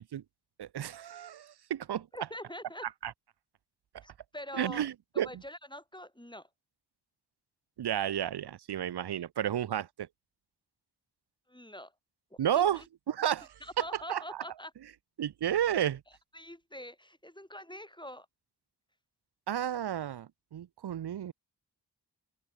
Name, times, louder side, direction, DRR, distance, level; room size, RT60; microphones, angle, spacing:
voice 1, 0.6-2.1 3.0-3.1 4.5-5.3 7.8-10.1 12.4-12.8 13.1-13.5 14.1-14.4 15.2-16.0 19.5-21.3, right 10 dB, 85° right, 0.6 m, -32 dB
voice 2, 2.1-2.8 4.0-4.9 5.2-6.5 11.5-11.9 12.3-12.9 13.6-14.7 16.3-18.3, left 1 dB, 10° left, 3.0 m, -45 dB
open air
wide cardioid pair, 50°, 39 cm